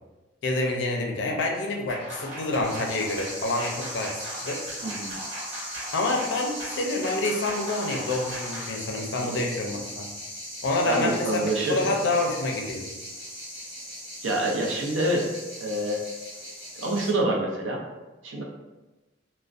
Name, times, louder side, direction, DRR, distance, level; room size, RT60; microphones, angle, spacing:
voice 1, 0.4-4.6 5.9-10.1 10.6-12.9, left 2 dB, 65° left, 1 dB, 0.4 m, -27 dB
sound 1, 1.9-8.7, right 1 dB, 70° right, 1.0 m, -39 dB
sound 2, 2.6-17.1, equal, 25° right, 1.3 m, -39 dB
voice 2, 4.8-5.1 9.2-9.4 10.9-11.8 14.2-15.3 15.6-16.0 16.7-17.8 18.2-18.4, right 1 dB, 90° right, 0 dB, 0.5 m, -27 dB
2.4 x 2.1 x 2.4 m, 1.1 s
head